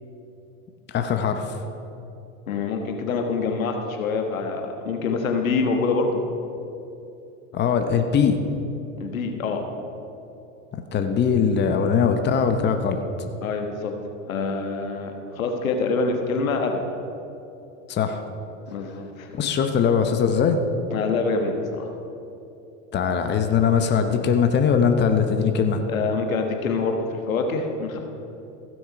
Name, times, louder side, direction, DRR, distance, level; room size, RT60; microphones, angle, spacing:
voice 1, 0.9-1.6 7.5-8.4 10.7-13.0 17.9-18.2 19.3-20.6 22.9-25.8, left 6 dB, 25° left, 6 dB, 0.9 m, -21 dB
voice 2, 2.5-6.2 9.0-9.6 13.4-13.9 14.2-16.9 18.7-19.3 20.9-21.9 25.9-28.0, left 4 dB, 85° left, 4 dB, 1.4 m, -25 dB
15.5 x 6.3 x 5.1 m, 2.8 s
hypercardioid pair, 100°, 40 cm